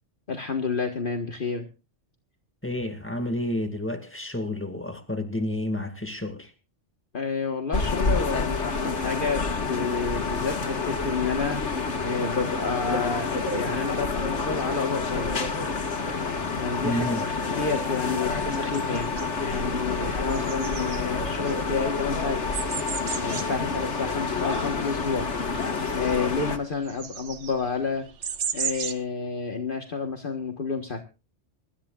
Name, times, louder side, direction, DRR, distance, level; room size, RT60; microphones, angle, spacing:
voice 1, 0.3-1.7 7.1-15.4 16.5-19.1 19.4-22.4 22.8-25.3 25.9-28.1 28.5-31.0, left 4 dB, 50° left, 1.6 m, -30 dB
voice 2, 2.6-6.5 16.8-17.2, left 1 dB, 10° left, 2.1 m, -30 dB
sound 1, 7.7-26.6, left 4 dB, 80° left, 2.0 m, -28 dB
sound 2, 18.4-29.0, right 7 dB, 90° right, 1.3 m, -37 dB
24.5 x 13.5 x 2.4 m
omnidirectional pair, 1.2 m